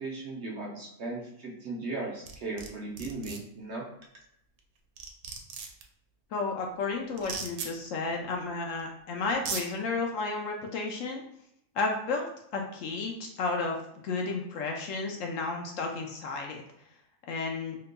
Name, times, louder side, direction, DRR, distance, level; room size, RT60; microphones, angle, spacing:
voice 1, 0.0-3.9, right 3 dB, 55° right, -2 dB, 0.9 m, -37 dB
sound 1, 2.3-2.7 3.0-3.4 4.6-4.7 5.0-5.8 7.2-7.7 8.8-8.9 9.3-9.6, right 6 dB, 80° right, 1.0 m, -36 dB
voice 2, 6.3-11.2 11.7-13.8 14.0-16.6 17.3-17.8, left 3 dB, 70° left, 1 dB, 0.9 m, -32 dB
3.7 x 2.9 x 2.2 m, 0.76 s
omnidirectional pair, 1.5 m